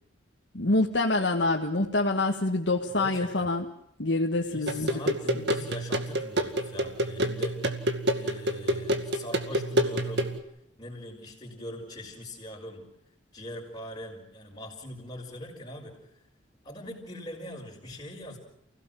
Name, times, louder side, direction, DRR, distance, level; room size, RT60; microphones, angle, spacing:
voice 1, 0.5-3.6 4.0-5.4, left 2 dB, 70° left, 0 dB, 1.7 m, -26 dB
voice 2, 2.8-3.5 4.5-10.3 10.8-12.9 13.3-16.0 16.6-18.4, left 1 dB, 25° left, -8 dB, 5.0 m, -42 dB
sound 1, 4.7-10.4, equal, 65° right, 2.2 m, -28 dB
29.5 x 17.0 x 7.6 m, 0.77 s
head